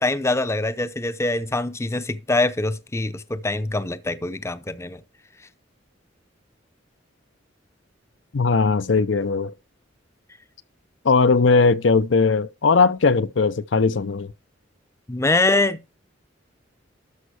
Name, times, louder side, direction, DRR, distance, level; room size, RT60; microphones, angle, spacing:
voice 1, 0.0-5.0 15.1-16.0, left 2 dB, 15° left, 0.6 m, -24 dB
voice 2, 8.3-9.5 11.0-14.3, left 4 dB, 70° left, 0.6 m, -19 dB
12.5 x 5.4 x 4.8 m
head